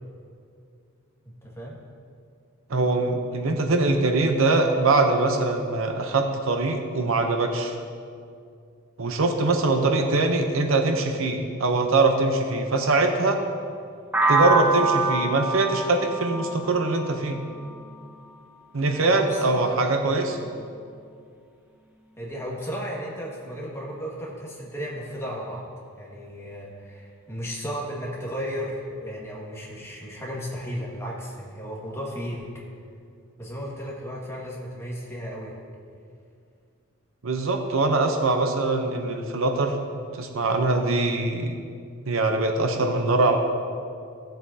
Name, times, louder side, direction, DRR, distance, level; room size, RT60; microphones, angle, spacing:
voice 1, 1.2-1.8 9.7-10.2 19.0-20.5 22.2-25.6 26.0-32.5 33.4-35.6, equal, 15° left, -5 dB, 1.8 m, -34 dB
voice 2, 2.7-7.8 9.0-13.4 14.3-17.4 18.7-20.4 37.2-41.5 42.1-43.4, right 2 dB, 65° right, 5 dB, 0.8 m, -23 dB
sound 1, 14.1-18.0, right 3 dB, 10° right, 0.6 m, -25 dB
15.5 x 7.7 x 2.8 m, 2.3 s
head